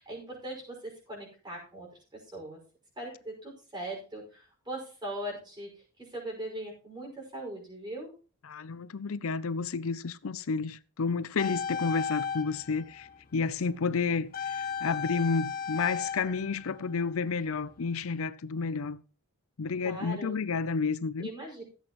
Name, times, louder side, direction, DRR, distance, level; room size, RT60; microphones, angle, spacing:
voice 1, 0.0-1.9 2.1-2.6 3.0-5.7 6.0-8.1 19.8-20.4 21.2-21.6, right 1 dB, 20° right, 5.5 m, -40 dB
voice 2, 8.4-19.0 19.6-21.3, left 4 dB, 70° left, 0.5 m, -31 dB
sound 1, 11.4-13.4 14.3-17.4 17.8-17.9, left 7 dB, 40° left, 0.8 m, -35 dB
15.5 x 8.1 x 3.1 m
head